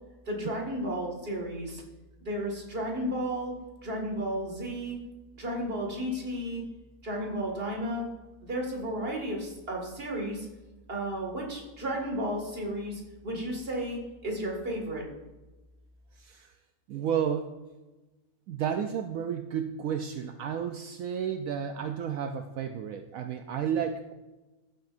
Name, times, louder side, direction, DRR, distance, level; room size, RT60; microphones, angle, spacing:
voice 1, 0.3-1.8 2.2-3.5 3.8-5.0 5.4-6.6 7.0-8.1 8.4-10.5 10.9-15.0, equal, 40° right, 0 dB, 2.2 m, -33 dB
voice 2, 16.2-16.5 16.9-17.5 18.5-24.1, right 8 dB, 70° right, 6 dB, 0.9 m, -32 dB
14.5 x 7.6 x 2.6 m, 1.1 s
omnidirectional pair, 1.6 m